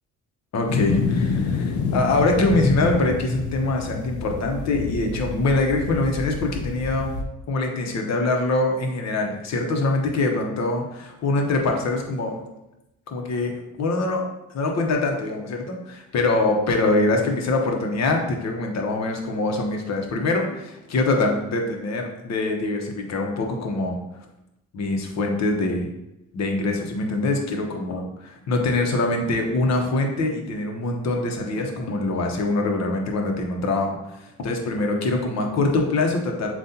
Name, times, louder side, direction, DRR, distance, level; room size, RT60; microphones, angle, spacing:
voice 1, 0.5-7.1 7.5-12.4 13.1-13.5 13.8-14.2 14.5-24.0 24.7-25.9 26.3-36.5, left 2 dB, 60° left, 2 dB, 1.0 m, -24 dB
sound 1, 0.7-7.2, left 4 dB, 75° left, 0.7 m, -27 dB
7.4 x 2.5 x 2.8 m, 0.90 s
cardioid pair, 90°, 30 cm